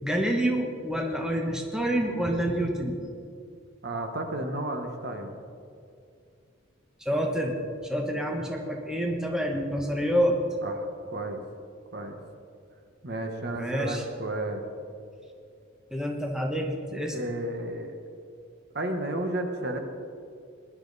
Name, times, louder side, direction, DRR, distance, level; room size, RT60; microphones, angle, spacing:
voice 1, 0.0-3.0 7.0-7.6 7.8-10.4 13.6-14.0 15.9-17.2, equal, 5° right, 1 dB, 1.1 m, -27 dB
voice 2, 3.8-5.3 10.6-11.4 11.9-12.2 13.0-14.6 17.1-17.9 18.7-19.8, right 1 dB, 50° right, 5 dB, 1.2 m, -32 dB
18.5 x 11.5 x 4.1 m, 2.4 s
head